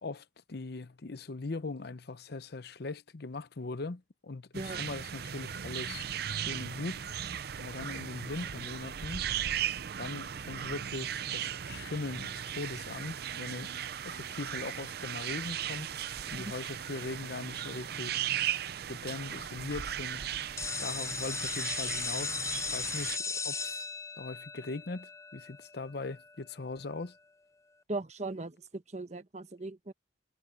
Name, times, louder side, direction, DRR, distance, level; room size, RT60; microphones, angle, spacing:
voice 1, 0.0-6.1 6.3-7.0 7.6-9.3 10.0-13.7 14.0-15.9 16.3-18.2 18.9-23.9 24.2-27.2, left 3 dB, 60° left, 0.8 m, -40 dB
sound 1, 4.5-23.2, right 9 dB, 60° right, 0.6 m, -37 dB
sound 2, 20.6-26.2, left 5 dB, 15° left, 0.5 m, -37 dB
voice 2, 27.9-29.9, right 2 dB, 40° right, 1.2 m, -38 dB
head